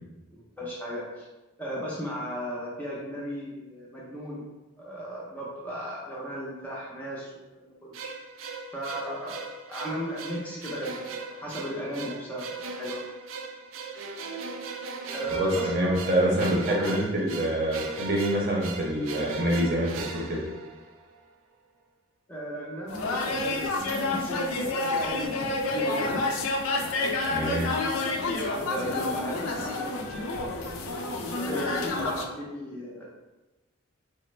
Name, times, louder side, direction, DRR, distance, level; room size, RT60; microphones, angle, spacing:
voice 1, 0.3-1.3 1.6-4.5 4.8-7.9 8.7-13.0 15.1-16.0 16.3-17.0 17.3-17.4 22.3-26.3 28.0-30.1 31.4-33.0, equal, 10° left, -6 dB, 0.4 m, -36 dB
sound 1, 7.9-21.2, right 4 dB, 75° right, 0.3 m, -39 dB
voice 2, 15.3-20.4 27.3-27.7, right 1 dB, 45° right, -3 dB, 0.7 m, -26 dB
sound 2, 22.9-32.2, left 2 dB, 85° left, 0.4 m, -29 dB
3.2 x 2.0 x 3.1 m, 1.1 s
head